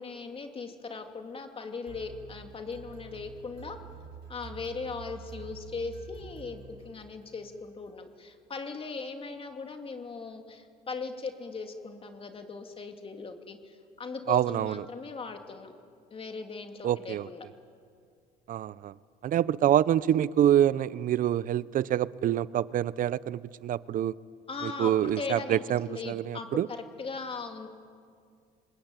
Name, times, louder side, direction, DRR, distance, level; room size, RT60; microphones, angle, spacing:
voice 1, 0.0-3.8 4.3-15.7 16.1-17.5 24.5-27.7, left 4 dB, 35° left, 5 dB, 2.7 m, -39 dB
sound 1, 1.9-7.5, right 5 dB, 75° right, 5.1 m, -47 dB
voice 2, 14.3-14.8 16.8-17.3 18.5-18.9 19.2-24.2 24.6-26.7, right 11 dB, 55° right, 20 dB, 0.7 m, -26 dB
26.0 x 21.0 x 9.1 m, 2.2 s
cardioid pair, 110°, 17 cm